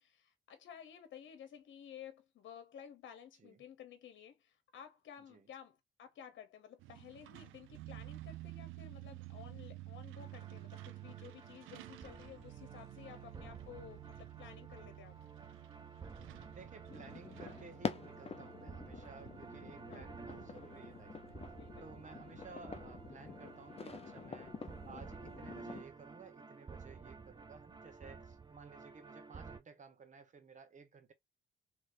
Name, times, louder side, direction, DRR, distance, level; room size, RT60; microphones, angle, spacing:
voice 1, 0.0-15.2 19.9-20.1 21.5-21.9, left 9 dB, 70° left, 1.0 m, -54 dB
Truck, 6.8-25.3, right 18 dB, 90° right, 0.4 m, -53 dB
sound 1, 10.2-29.6, right 4 dB, 20° right, 0.6 m, -53 dB
voice 2, 16.5-21.4 21.8-24.6 24.9-31.1, right 5 dB, 40° right, 1.2 m, -56 dB
sound 2, 16.9-25.8, left 5 dB, 30° left, 0.6 m, -47 dB
3.2 x 3.2 x 2.7 m
cardioid pair, 90°, 20 cm